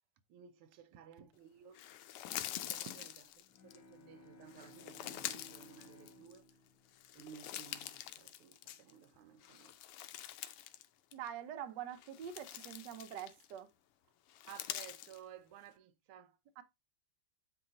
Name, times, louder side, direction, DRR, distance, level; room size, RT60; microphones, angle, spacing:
voice 1, 0.3-1.9 2.3-6.5 7.1-9.8 14.5-16.4, right 9 dB, 85° right, 1.6 m, -56 dB
sound 1, 1.7-3.8 4.5-6.5 6.9-9.0 9.4-10.9 11.1-11.3 11.9-13.6 14.3-15.2, left 12 dB, 85° left, 1.5 m, -45 dB
Bowed string instrument, 3.4-8.0, left 2 dB, 70° left, 1.8 m, -60 dB
voice 2, 11.1-13.7 16.6-16.7, right 9 dB, 65° right, 1.1 m, -45 dB
8.6 x 2.9 x 3.8 m
omnidirectional pair, 2.4 m